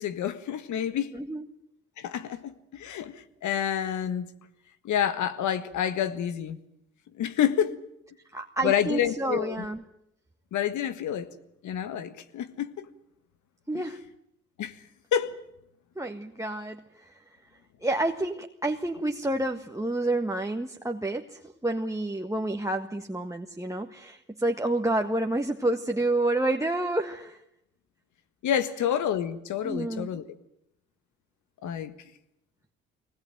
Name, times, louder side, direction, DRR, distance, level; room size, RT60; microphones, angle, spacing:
voice 1, 0.0-1.1 2.0-4.3 4.8-6.6 7.2-7.8 8.6-9.6 10.5-11.3 11.6-12.9 13.7-13.9 14.6-14.7 15.1-15.4 28.4-30.2 31.6-31.9, left 9 dB, 75° left, 1.7 m, -28 dB
voice 2, 1.1-1.5 8.3-9.8 13.7-14.0 15.9-17.1 17.8-27.4 29.6-30.1, right 2 dB, 10° right, 1.6 m, -29 dB
22.0 x 19.5 x 9.2 m
supercardioid pair, 60°, 30 cm